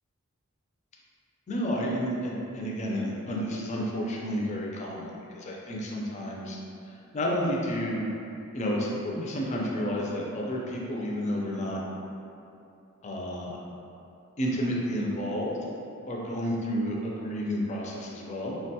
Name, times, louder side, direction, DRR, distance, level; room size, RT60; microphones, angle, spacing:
voice 1, 1.5-6.6 7.1-8.1 8.5-11.8 13.0-13.6 14.4-15.5 16.1-18.6, equal, 30° left, -3 dB, 0.4 m, -31 dB
3.6 x 2.2 x 2.7 m, 2.7 s
head